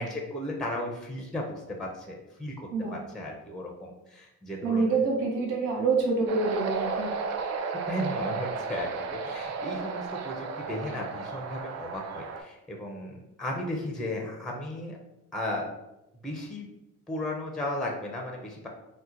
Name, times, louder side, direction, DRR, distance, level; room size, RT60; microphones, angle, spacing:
voice 1, 0.0-4.9 7.9-15.0 15.3-15.7 16.2-16.7 17.1-18.7, left 1 dB, ahead, 0 dB, 0.5 m, -35 dB
voice 2, 4.6-7.2, right 4 dB, 85° right, 0 dB, 0.9 m, -26 dB
sound 1, 6.3-12.4, right 4 dB, 60° right, 0.5 m, -33 dB
2.8 x 2.1 x 3.6 m, 0.92 s
cardioid pair, 90°, 30 cm